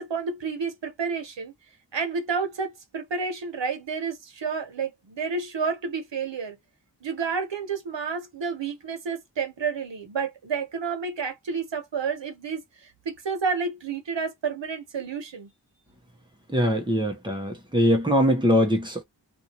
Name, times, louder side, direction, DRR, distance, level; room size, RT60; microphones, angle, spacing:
voice 1, 0.0-1.5 1.9-6.6 7.0-15.5, right 5 dB, 85° right, 1.0 m, -30 dB
voice 2, 16.5-19.0, equal, 10° right, 1.0 m, -22 dB
2.6 x 2.6 x 2.9 m
wide cardioid pair, 70°, 43 cm